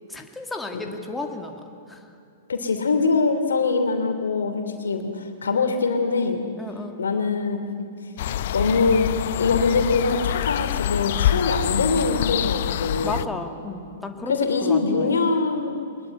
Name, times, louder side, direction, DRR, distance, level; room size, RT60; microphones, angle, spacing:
voice 1, 0.1-1.6 1.9-2.1 6.6-7.0 13.0-15.2, left 3 dB, 5° left, 3 dB, 2.1 m, -33 dB
voice 2, 2.5-6.4 7.0-7.9 8.5-9.1 9.4-13.2 14.3-15.8, left 4 dB, 75° left, 6 dB, 2.9 m, -23 dB
sound 1, 8.2-13.2, left 11 dB, 55° left, 0.6 m, -26 dB
22.5 x 20.5 x 9.9 m, 2.5 s
figure-of-eight pair, 110°, 0 cm